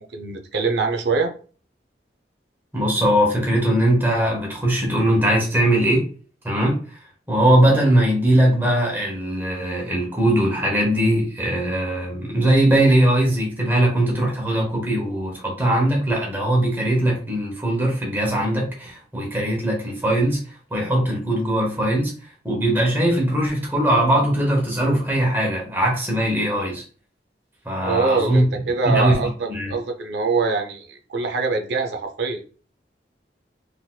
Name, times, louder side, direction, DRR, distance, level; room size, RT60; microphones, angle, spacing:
voice 1, 0.1-1.3 27.8-32.4, right 4 dB, 75° right, 5 dB, 0.5 m, -24 dB
voice 2, 2.7-6.1 6.4-22.1 22.4-26.8 27.6-28.4 28.8-29.7, right 1 dB, 10° right, -1 dB, 1.0 m, -20 dB
3.8 x 2.8 x 2.3 m, 0.41 s
head